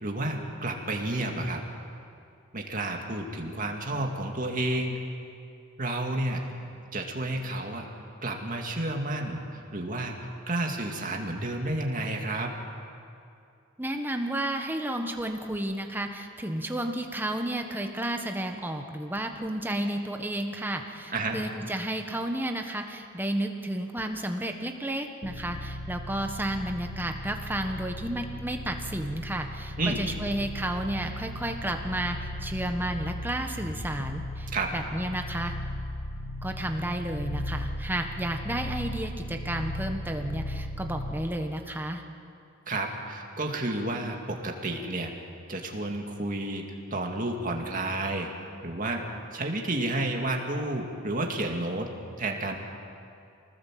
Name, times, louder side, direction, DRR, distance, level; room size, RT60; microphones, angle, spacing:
voice 1, 0.0-1.6 2.5-5.0 5.8-6.4 6.9-7.9 8.2-10.1 10.5-12.5 21.1-21.4 29.8-30.0 34.5-34.7 42.7-45.1 45.5-46.6 46.9-48.3 48.6-49.0 49.3-51.9 52.2-52.6, right 2 dB, 40° right, 1 dB, 2.4 m, -31 dB
voice 2, 13.8-35.5 36.4-42.0, right 1 dB, 10° right, 4 dB, 1.3 m, -32 dB
sound 1, 25.2-41.4, left 1 dB, 70° left, 1.2 m, -37 dB
25.0 x 19.0 x 7.6 m, 2.6 s
head